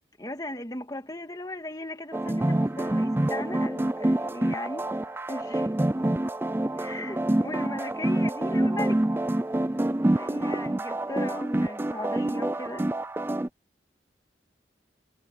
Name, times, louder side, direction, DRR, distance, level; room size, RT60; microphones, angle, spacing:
voice 1, 0.2-4.9 5.3-5.8 6.8-9.0 10.1-12.9, left 1 dB, 20° left, 2.1 m, -37 dB
sound 1, 2.1-13.5, right 1 dB, 15° right, 0.4 m, -27 dB
head